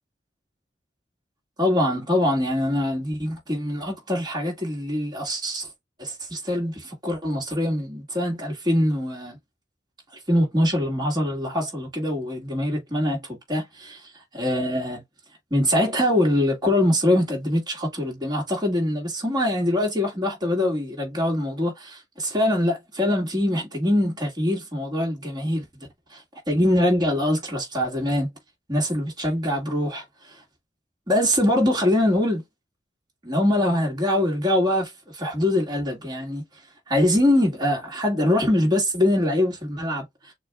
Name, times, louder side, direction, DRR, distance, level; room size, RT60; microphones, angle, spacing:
voice 1, 1.6-5.7 6.0-9.4 10.3-13.2 13.5-14.0 14.3-15.0 15.5-25.6 26.1-26.2 26.5-28.3 28.7-30.0 31.1-32.4 33.2-36.4 36.9-40.0, left 1 dB, 25° right, 1.9 m, -23 dB
6.5 x 2.4 x 2.3 m
head